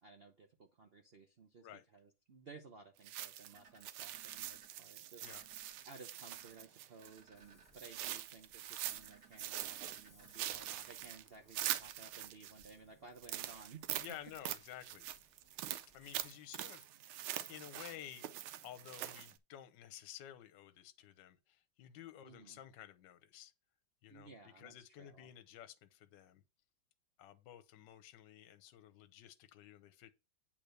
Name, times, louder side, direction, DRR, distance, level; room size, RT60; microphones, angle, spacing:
voice 1, 0.0-5.3 5.8-13.9 22.2-22.6 24.1-25.3, right 4 dB, 70° right, 0.5 m, -57 dB
sound 1, 3.0-7.2 7.7-9.1 9.4-12.7 13.2-19.4, right 12 dB, 90° right, 1.5 m, -44 dB
sound 2, 3.5-4.7 5.2-5.8 6.3-6.7 7.0-7.7 8.8-10.8, right 6 dB, 50° right, 2.1 m, -63 dB
Ocean, 7.3-16.3, left 1 dB, 10° left, 1.3 m, -68 dB
voice 2, 14.0-15.1 15.9-18.3 18.6-23.5 24.0-24.3 24.6-26.4 27.2-30.1, left 11 dB, 70° left, 1.3 m, -53 dB
8.7 x 3.4 x 6.5 m
omnidirectional pair, 2.3 m